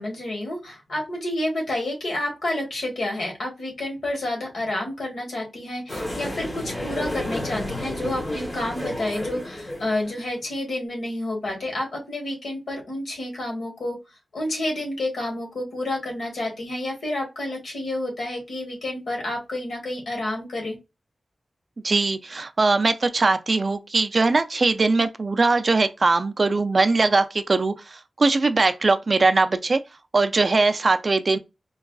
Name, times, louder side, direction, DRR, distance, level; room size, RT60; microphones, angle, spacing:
voice 1, 0.0-14.0 14.3-20.8, left 1 dB, 75° left, 1.4 m, -29 dB
sound 1, 5.9-10.3, left 1 dB, 30° left, 1.2 m, -31 dB
voice 2, 21.8-29.8 30.1-31.4, right 3 dB, 40° right, 0.3 m, -21 dB
4.5 x 2.3 x 2.3 m
wide cardioid pair, 145°, 0 cm